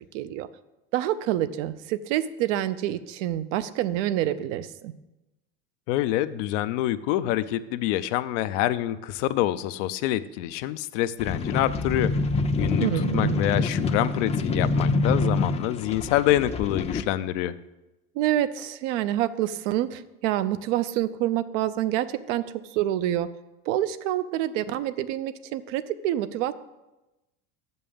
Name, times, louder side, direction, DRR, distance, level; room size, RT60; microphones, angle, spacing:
voice 1, 0.1-0.5 0.9-4.9 12.8-13.4 18.1-23.3 23.7-26.5, right 13 dB, 80° right, 13 dB, 0.6 m, -27 dB
voice 2, 5.9-12.1 12.5-12.9 13.1-17.6, left 14 dB, 80° left, 14 dB, 0.5 m, -26 dB
sound 1, 11.2-17.0, left 3 dB, 20° left, 0.4 m, -26 dB
6.7 x 5.4 x 7.1 m, 1.0 s
supercardioid pair, 115°, 36 cm